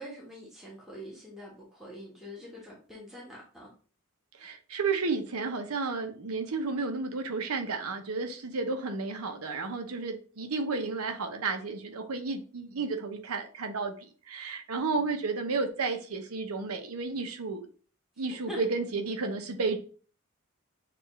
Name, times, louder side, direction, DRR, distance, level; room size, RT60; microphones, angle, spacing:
voice 1, 0.0-3.7 18.3-18.6, equal, ahead, 1.1 m, -44 dB
voice 2, 4.4-17.7 18.2-19.8, right 4 dB, 80° right, 0.8 m, -32 dB
6.8 x 2.5 x 3.1 m
head